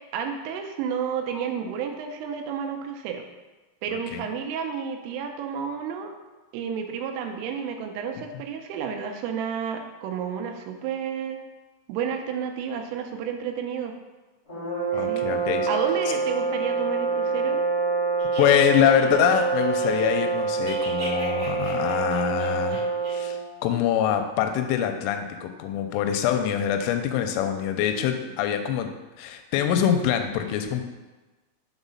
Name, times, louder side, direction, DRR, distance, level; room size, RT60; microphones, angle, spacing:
voice 1, 0.1-3.2 3.8-6.1 6.5-11.4 11.9-14.0 14.9-15.3 15.7-17.6, right 7 dB, 85° right, 5 dB, 3.2 m, -31 dB
sound 1, 14.5-23.4, right 4 dB, 60° left, 0.8 m, -26 dB
voice 2, 14.9-15.7 18.4-22.9 23.1-28.9 29.2-30.8, left 9 dB, 85° left, 6 dB, 3.0 m, -24 dB
sound 2, 18.2-20.3 20.5-23.1, right 1 dB, 60° right, 1.5 m, -40 dB
7.2 x 3.8 x 5.5 m, 1.2 s
omnidirectional pair, 5.8 m